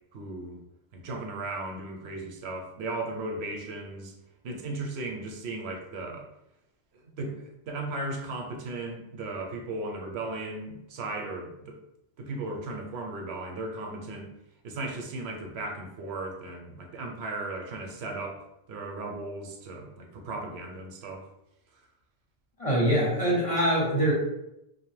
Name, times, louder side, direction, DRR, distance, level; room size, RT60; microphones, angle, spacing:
voice 1, 0.1-0.6 0.9-4.1 4.4-6.3 7.2-11.8 12.2-14.3 14.6-21.3, right 2 dB, 80° right, 2 dB, 0.8 m, -36 dB
voice 2, 22.6-24.1, right 1 dB, 35° left, -5 dB, 0.7 m, -24 dB
2.7 x 2.0 x 3.1 m, 0.84 s
omnidirectional pair, 1.1 m